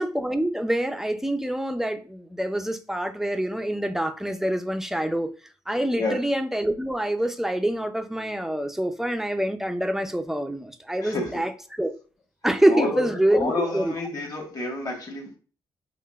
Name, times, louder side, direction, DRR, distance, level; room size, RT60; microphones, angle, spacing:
voice 1, 0.0-5.3 5.7-11.9 12.4-13.9, right 1 dB, 5° right, 0.4 m, -26 dB
voice 2, 11.0-11.4 12.7-15.4, left 2 dB, 35° left, 1.3 m, -29 dB
5.7 x 2.4 x 2.3 m
cardioid pair, 110°, 10 cm